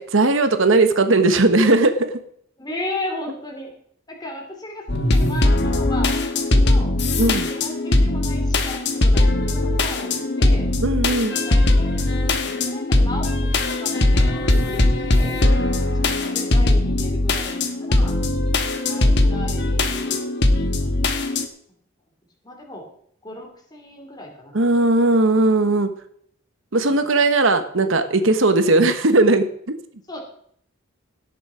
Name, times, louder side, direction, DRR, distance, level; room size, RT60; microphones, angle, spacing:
voice 1, 0.0-2.1 7.2-7.5 10.8-11.4 24.5-25.9 26.7-29.7, right 2 dB, 65° right, 8 dB, 1.2 m, -18 dB
voice 2, 2.6-3.7 4.1-4.9 5.1-6.2 6.5-6.9 7.4-10.7 11.3-12.0 12.4-15.4 15.8-15.9 16.2-18.2 18.9-20.2 22.4-22.9 23.2-24.5 26.9-27.0 30.1-30.2, left 1 dB, 20° left, 1 dB, 2.9 m, -35 dB
sound 1, 4.9-21.5, left 2 dB, 55° left, 1.3 m, -20 dB
17.5 x 7.1 x 4.9 m, 0.67 s
head